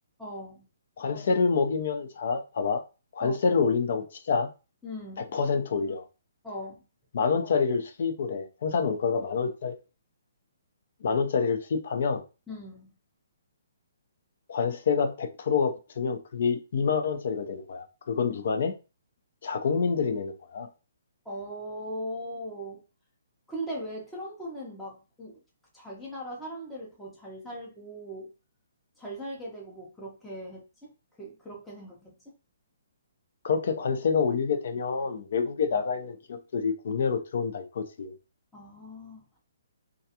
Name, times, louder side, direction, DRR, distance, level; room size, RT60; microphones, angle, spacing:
voice 1, 0.2-0.7 3.2-3.4 4.8-5.3 6.4-6.8 12.5-12.9 18.1-18.2 21.2-22.8 23.5-25.4 25.7-28.3 29.0-30.9 31.2-32.3 38.5-39.4, equal, 5° left, 0.6 m, -39 dB
voice 2, 1.0-2.8 3.1-4.5 5.3-6.0 7.1-9.7 11.0-12.2 14.5-18.7 19.4-20.7 33.4-38.1, left 5 dB, 55° left, 0.5 m, -27 dB
2.3 x 2.3 x 2.8 m
hypercardioid pair, 160°, 0 cm